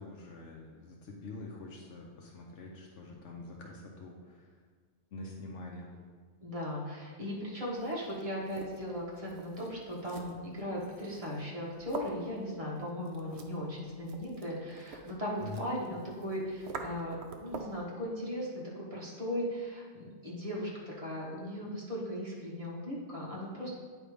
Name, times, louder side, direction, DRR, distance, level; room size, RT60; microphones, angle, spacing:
voice 1, 0.0-4.6 5.1-6.0 15.4-15.7, left 2 dB, 75° left, -1 dB, 1.1 m, -45 dB
voice 2, 6.4-23.7, equal, 30° right, -5 dB, 1.6 m, -37 dB
sound 1, 7.7-17.9, right 4 dB, 65° right, 0.9 m, -48 dB
9.0 x 3.3 x 5.0 m, 1.5 s
omnidirectional pair, 1.3 m